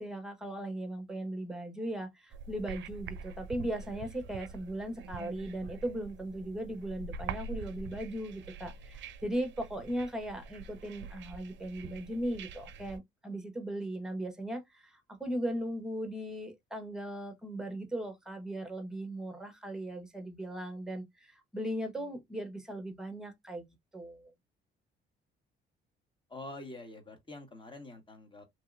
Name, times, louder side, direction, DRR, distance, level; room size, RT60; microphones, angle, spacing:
voice 1, 0.0-23.7 23.9-24.3, right 1 dB, 5° right, 1.1 m, -38 dB
sound 1, 2.3-13.0, right 5 dB, 65° right, 0.5 m, -45 dB
voice 2, 26.3-28.4, left 2 dB, 25° left, 1.4 m, -46 dB
3.1 x 2.7 x 2.5 m
supercardioid pair, 75°, 21 cm